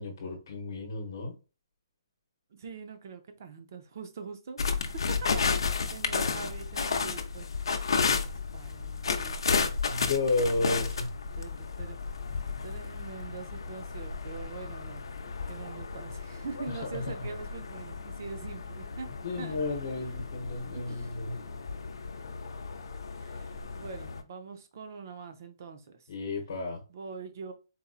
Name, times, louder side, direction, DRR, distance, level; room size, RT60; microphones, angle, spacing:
voice 1, 0.0-1.3 9.9-11.1 16.9-17.0 19.2-21.3 26.1-26.8, left 3 dB, 45° left, 0.9 m, -32 dB
voice 2, 2.5-7.5 8.5-9.4 10.5-11.0 11.3-12.0 12.6-15.0 15.5-19.1 19.3-19.6 20.7-21.1 23.1-26.1 26.9-27.5, right 5 dB, 40° right, 0.5 m, -43 dB
sound 1, 4.6-24.2, left 5 dB, 75° left, 0.5 m, -33 dB
4.1 x 2.5 x 2.4 m
hypercardioid pair, 175°, 3 cm